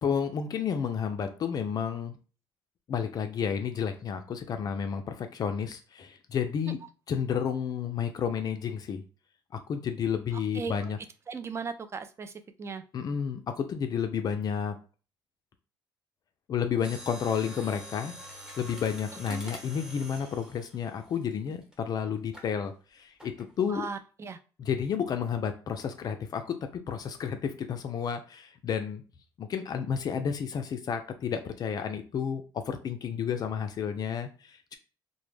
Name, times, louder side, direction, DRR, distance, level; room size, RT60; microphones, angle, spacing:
voice 1, 0.0-2.2 2.9-6.8 7.1-9.0 9.5-11.0 12.9-14.8 16.5-18.2 18.6-23.9 24.6-29.0 29.4-34.8, left 7 dB, 50° left, 7 dB, 0.3 m, -31 dB
voice 2, 10.3-10.8 11.3-12.3 12.6-12.8 19.3-19.4 23.6-24.4, right 5 dB, 30° right, 9 dB, 0.3 m, -37 dB
Mechanisms, 16.7-21.7 22.3-22.5 23.2-23.5 23.8-23.9, equal, 10° right, 0.9 m, -45 dB
2.1 x 2.1 x 3.1 m, 0.35 s
cardioid pair, 90°, 9 cm